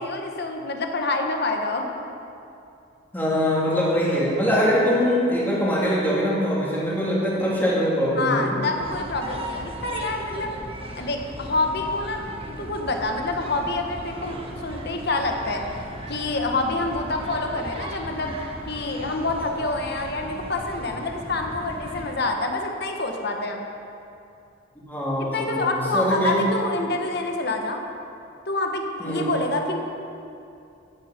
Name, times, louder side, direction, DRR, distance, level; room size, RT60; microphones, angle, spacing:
voice 1, 0.0-1.9 4.9-5.1 8.2-10.5 11.0-15.6 16.1-23.6 25.2-27.8 28.5-29.8, left 2 dB, 55° left, 3 dB, 1.4 m, -27 dB
voice 2, 3.1-8.6 24.9-26.4 29.0-29.3, equal, 10° left, -6 dB, 2.8 m, -23 dB
sound 1, 8.8-22.1, right 1 dB, 30° right, 1.2 m, -37 dB
14.0 x 10.5 x 5.2 m, 2.6 s
head